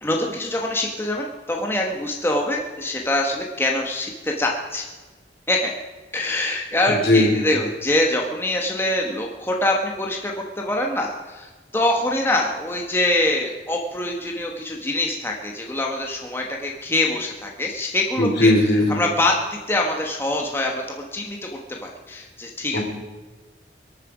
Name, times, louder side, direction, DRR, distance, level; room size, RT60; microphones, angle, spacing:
voice 1, 0.0-4.9 5.5-5.7 6.1-18.5 18.9-22.8, left 1 dB, 15° left, 0 dB, 1.2 m, -24 dB
voice 2, 6.9-7.3 18.2-19.0 22.7-22.8, left 1 dB, 70° left, 0 dB, 4.0 m, -18 dB
24.0 x 9.0 x 5.0 m, 1.3 s
head